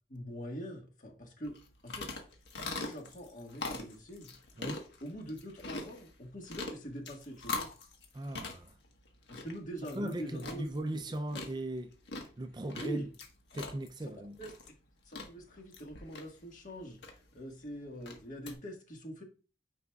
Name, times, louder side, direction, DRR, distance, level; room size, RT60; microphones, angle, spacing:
voice 1, 0.1-1.6 1.8-2.1 2.6-4.4 5.0-7.7 9.3-10.6 12.7-13.1 14.0-14.7 15.0-19.2, equal, 45° left, 1.6 m, -44 dB
sound 1, 1.4-18.5, left 3 dB, 85° left, 1.4 m, -44 dB
voice 2, 8.1-8.7 10.0-12.0 12.4-13.1 13.5-14.4, right 1 dB, 25° right, 0.4 m, -38 dB
9.5 x 4.9 x 2.4 m
head